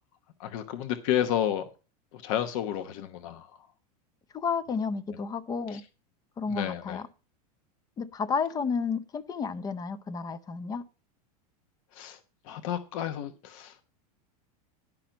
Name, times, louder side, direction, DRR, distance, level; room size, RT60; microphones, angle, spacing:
voice 1, 0.4-1.6 2.2-3.5 6.5-7.0 12.0-12.2 12.5-13.7, left 10 dB, 60° left, 1.0 m, -31 dB
voice 2, 4.3-5.8 6.4-7.1 8.0-10.8, left 5 dB, 20° left, 0.6 m, -31 dB
10.5 x 5.9 x 5.2 m
supercardioid pair, 140°, 20 cm